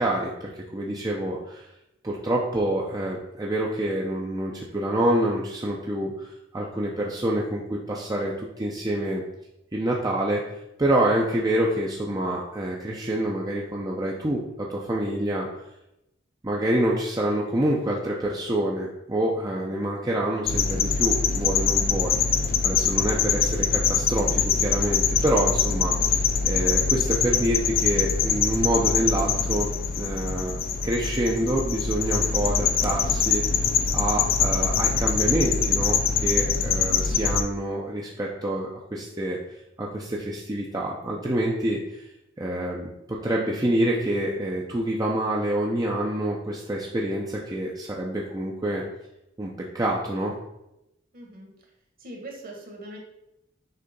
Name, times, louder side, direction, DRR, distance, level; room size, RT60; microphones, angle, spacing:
voice 1, 0.0-1.7 2.0-6.3 6.5-9.2 9.7-10.4 10.8-15.5 16.4-22.2 22.6-29.7 30.0-30.6 30.8-33.4 33.9-39.4 39.8-42.0 42.4-48.8 49.4-49.5 49.7-50.3, right 1 dB, 20° right, -2 dB, 0.6 m, -27 dB
sound 1, 20.5-37.4, left 6 dB, 50° left, 0.5 m, -24 dB
voice 2, 27.3-27.7 51.1-51.5 52.0-53.0, right 1 dB, 50° right, 0 dB, 1.6 m, -42 dB
6.6 x 3.3 x 5.3 m, 0.87 s
head